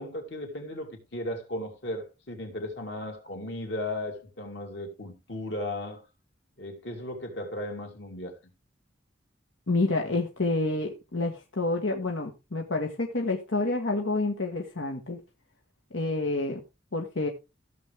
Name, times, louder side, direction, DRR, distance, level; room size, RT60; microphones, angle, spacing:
voice 1, 0.0-6.0 6.6-8.3, left 1 dB, 65° left, 3.1 m, -36 dB
voice 2, 9.7-15.2 15.9-16.6 16.9-17.3, left 2 dB, 90° left, 1.5 m, -28 dB
15.0 x 7.2 x 3.5 m
head